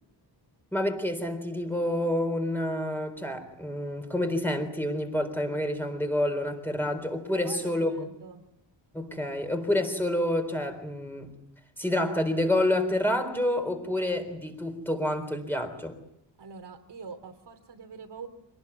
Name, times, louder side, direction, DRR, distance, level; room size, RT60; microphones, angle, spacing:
voice 1, 0.7-8.1 8.9-11.3 11.8-16.0, left 1 dB, 5° left, 5 dB, 3.9 m, -28 dB
voice 2, 7.3-8.4 16.4-18.3, right 5 dB, 60° right, 6 dB, 3.1 m, -44 dB
26.5 x 19.5 x 9.7 m, 0.81 s
wide cardioid pair, 175°, 45 cm